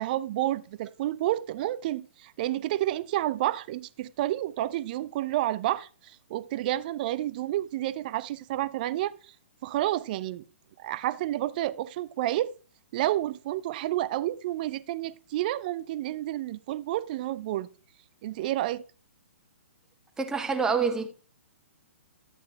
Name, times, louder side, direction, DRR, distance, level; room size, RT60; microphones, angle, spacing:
voice 1, 0.0-9.1 9.6-10.4 10.8-12.5 12.9-17.7 18.2-18.8, right 14 dB, 40° right, 0.5 m, -30 dB
voice 2, 20.2-21.2, right 5 dB, 10° right, 0.9 m, -27 dB
13.0 x 8.8 x 2.2 m
figure-of-eight pair, 120°, 7 cm